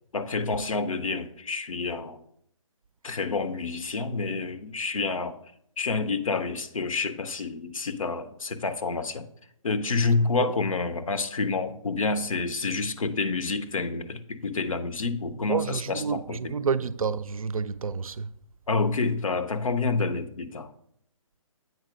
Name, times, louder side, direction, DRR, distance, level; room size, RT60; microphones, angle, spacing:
voice 1, 0.1-2.2 3.0-5.4 5.8-9.3 9.6-16.5 18.7-20.7, left 4 dB, 70° left, 0.8 m, -28 dB
voice 2, 15.5-18.3, right 5 dB, 80° right, 0.4 m, -29 dB
8.0 x 4.3 x 4.9 m
figure-of-eight pair, 140°, 18 cm